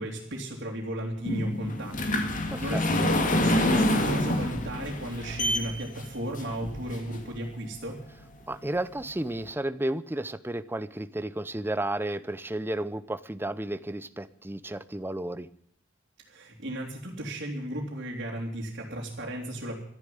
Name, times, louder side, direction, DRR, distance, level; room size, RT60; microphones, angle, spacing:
voice 1, 0.0-8.0 16.3-19.8, right 1 dB, 60° right, -3 dB, 3.1 m, -35 dB
sound 1, 1.3-7.4 8.0-8.1 8.6-8.7 9.0-9.1, left 1 dB, 45° left, 2.1 m, -27 dB
voice 2, 2.5-2.8 8.5-15.5, right 1 dB, 10° right, 14 dB, 0.7 m, -32 dB
13.5 x 11.0 x 9.3 m, 0.66 s
head